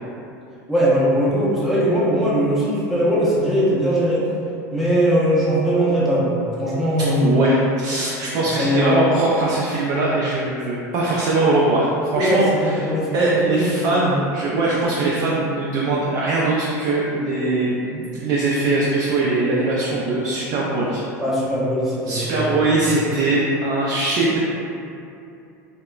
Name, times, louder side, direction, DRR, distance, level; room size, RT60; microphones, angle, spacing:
voice 1, 0.7-4.2 4.7-7.6 8.6-9.0 12.1-14.2 21.2-22.3 22.6-22.7, equal, ahead, -9 dB, 0.7 m, -20 dB
voice 2, 7.2-12.8 13.1-21.0 22.1-24.4, right 2 dB, 50° right, -6 dB, 0.4 m, -21 dB
2.7 x 2.1 x 2.3 m, 2.6 s
hypercardioid pair, 100°, 9 cm